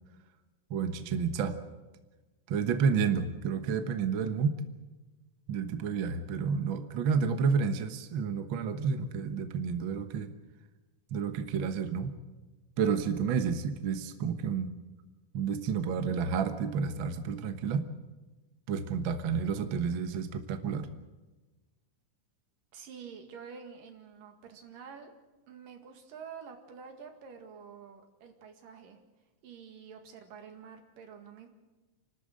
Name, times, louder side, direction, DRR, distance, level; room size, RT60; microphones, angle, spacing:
voice 1, 0.7-1.6 2.5-4.6 5.5-10.3 11.1-12.2 12.8-14.7 15.3-17.9 18.7-21.0, right 6 dB, 60° right, 8 dB, 1.3 m, -30 dB
voice 2, 22.7-25.1 25.5-29.0 29.4-31.5, right 6 dB, 75° right, 5 dB, 3.7 m, -48 dB
29.0 x 13.0 x 7.8 m, 1.2 s
omnidirectional pair, 4.0 m